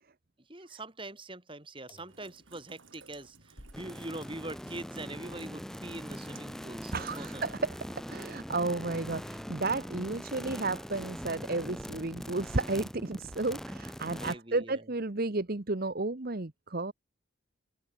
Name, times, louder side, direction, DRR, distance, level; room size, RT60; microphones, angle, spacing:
voice 1, 0.5-7.4 14.1-14.9, right 2 dB, 25° right, 4.9 m, -43 dB
sound 1, 1.9-2.9 3.5-4.5 7.1-7.7 8.0-8.1 8.4-8.5, left 1 dB, 20° left, 6.3 m, -57 dB
Rain, 2.1-7.6, right 5 dB, 70° right, 4.9 m, -57 dB
sound 2, 3.7-14.3, equal, ahead, 0.7 m, -42 dB
voice 2, 6.9-16.9, right 3 dB, 45° right, 1.1 m, -33 dB
head